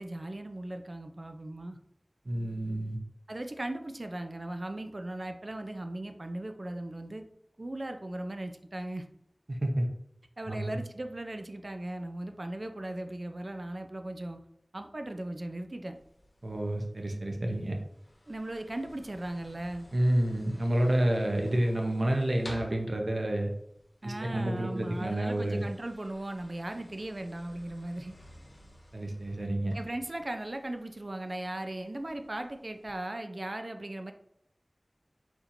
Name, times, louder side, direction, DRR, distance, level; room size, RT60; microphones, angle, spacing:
voice 1, 0.0-1.8 3.3-7.2 7.6-9.0 10.4-14.4 14.7-16.0 18.3-19.9 24.0-28.2 29.7-34.1, right 1 dB, 55° right, 6 dB, 0.4 m, -38 dB
voice 2, 2.2-3.0 9.5-9.9 10.5-10.8 16.4-17.7 19.9-23.5 24.0-25.6 28.9-29.7, right 1 dB, 85° right, 2 dB, 0.7 m, -29 dB
sound 1, 15.9-33.0, left 1 dB, 90° left, 0.9 m, -54 dB
4.3 x 4.1 x 2.5 m, 0.75 s
wide cardioid pair, 45°, 0 cm